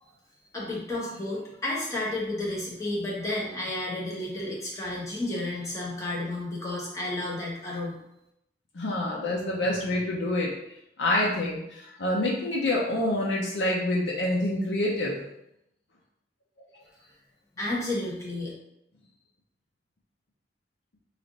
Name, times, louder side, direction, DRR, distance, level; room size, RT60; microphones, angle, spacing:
voice 1, 0.5-8.0 17.6-18.5, left 1 dB, 20° left, -6 dB, 1.0 m, -32 dB
voice 2, 8.7-10.5 11.0-15.2, left 1 dB, 85° left, -4 dB, 0.6 m, -27 dB
3.2 x 2.5 x 3.9 m, 0.82 s
head